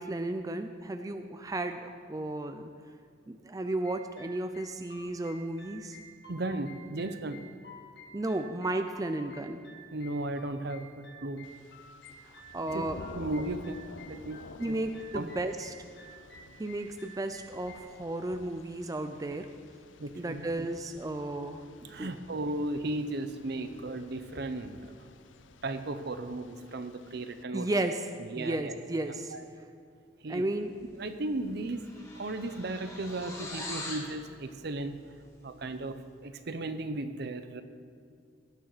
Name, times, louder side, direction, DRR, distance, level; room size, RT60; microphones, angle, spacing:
voice 1, 0.0-2.7 3.3-6.0 8.1-9.6 12.2-13.0 14.6-15.7 16.6-19.5 20.2-22.1 27.5-28.1 28.4-29.4 30.3-30.7, right 2 dB, 20° right, 7 dB, 0.4 m, -34 dB
sound 1, 3.7-17.8, equal, 65° left, 1.9 m, -53 dB
voice 2, 6.3-7.4 9.9-11.4 12.7-12.8 13.1-13.8 14.1-14.4 14.7-14.8 15.1-15.3 20.0-20.4 21.8-24.9 25.6-27.7 28.3-28.7 29.3-29.5 30.2-30.4 31.0-31.8 32.1-34.9 35.4-36.0 36.2-37.6, right 2 dB, 60° right, 9 dB, 0.8 m, -35 dB
Thunder / Rain, 11.4-27.4, left 4 dB, 90° left, 0.6 m, -51 dB
sound 2, 30.9-31.2 31.4-34.1, left 2 dB, 15° left, 2.1 m, -42 dB
17.5 x 9.5 x 4.1 m, 2.3 s
head